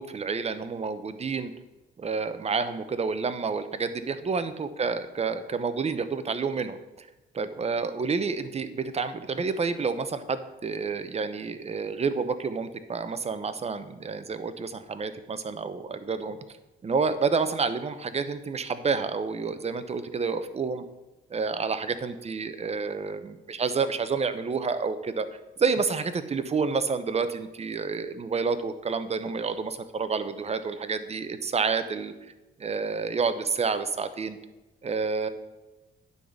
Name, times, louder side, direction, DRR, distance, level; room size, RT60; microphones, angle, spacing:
voice 1, 0.0-1.5 2.0-7.1 7.3-16.4 16.8-20.8 21.3-25.3 25.6-32.1 32.6-34.4 34.8-35.3, right 5 dB, 30° right, 11 dB, 0.8 m, -29 dB
9.8 x 4.1 x 7.2 m, 1.1 s
cardioid pair, 90°, 20 cm